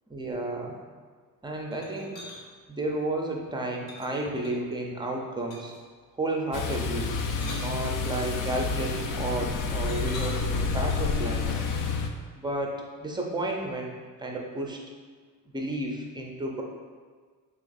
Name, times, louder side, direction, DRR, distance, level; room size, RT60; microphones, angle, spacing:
voice 1, 0.1-0.7 1.4-2.2 2.7-5.7 6.2-7.1 7.5-11.6 12.4-13.9 14.2-14.8 15.5-16.6, right 2 dB, 15° right, 1 dB, 0.5 m, -32 dB
sound 1, 1.7-2.4 3.9-4.8 5.5-5.9 7.0-8.4 9.9-11.2, left 1 dB, 85° left, 0.9 m, -43 dB
sound 2, 6.5-12.1, left 4 dB, 60° left, 0.5 m, -29 dB
3.4 x 2.9 x 4.0 m, 1.5 s
cardioid pair, 120°, 36 cm